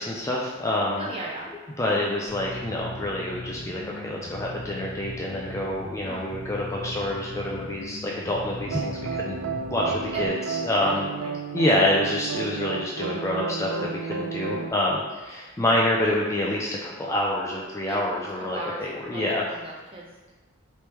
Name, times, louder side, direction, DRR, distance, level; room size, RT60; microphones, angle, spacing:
voice 1, 0.0-1.1 1.8-9.3 9.7-11.1 11.5-19.4, left 1 dB, 15° left, -4 dB, 0.3 m, -27 dB
voice 2, 1.0-1.5 6.1-6.2 10.1-11.3 14.5-14.7 17.9-18.0 18.5-20.1, right 2 dB, 25° right, -4 dB, 0.6 m, -38 dB
sound 1, 2.3-10.3, left 1 dB, 90° left, 0.8 m, -39 dB
sound 2, 8.7-14.7, right 5 dB, 75° right, 0.3 m, -32 dB
3.3 x 3.1 x 2.9 m, 1.2 s
head